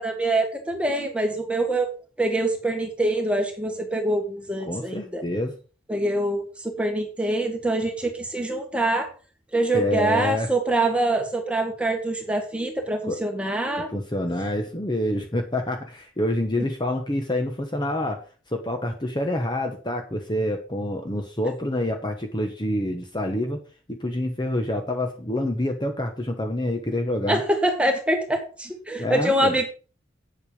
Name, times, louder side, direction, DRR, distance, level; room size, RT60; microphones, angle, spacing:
voice 1, 0.0-1.9 2.2-5.2 5.9-9.1 9.5-13.9 16.6-16.7 27.3-29.7, right 1 dB, 5° right, 3 dB, 1.8 m, -25 dB
voice 2, 4.6-5.5 9.7-10.5 13.0-13.2 13.9-23.6 23.9-27.4 29.0-29.6, left 1 dB, 25° left, 4 dB, 1.1 m, -27 dB
9.0 x 7.9 x 5.0 m, 0.37 s
head